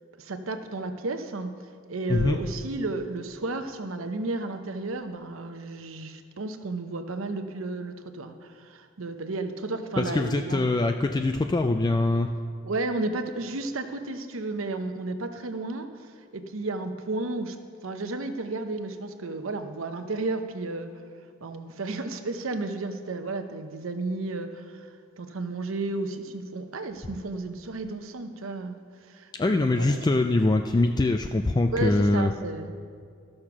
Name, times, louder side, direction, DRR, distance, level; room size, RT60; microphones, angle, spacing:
voice 1, 0.1-1.5 1.9-10.6 12.6-17.6 17.8-20.9 21.4-24.9 25.2-28.8 29.1-30.0 31.7-32.7, right 2 dB, 85° right, 7 dB, 0.8 m, -33 dB
voice 2, 10.0-12.3 29.3-32.3, left 2 dB, 20° left, 6 dB, 0.3 m, -23 dB
13.5 x 6.5 x 5.9 m, 2.2 s
head